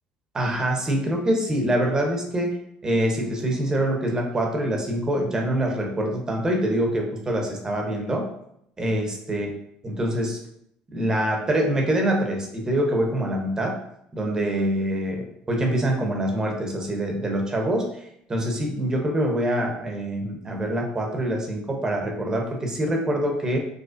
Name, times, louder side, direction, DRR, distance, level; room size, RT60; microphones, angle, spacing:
voice 1, 0.3-8.3 8.8-9.5 9.8-10.4 10.9-13.8 14.1-17.9 18.3-23.6, right 1 dB, 25° right, 1 dB, 0.8 m, -25 dB
4.9 x 2.0 x 2.5 m, 0.74 s
supercardioid pair, 100°, 3 cm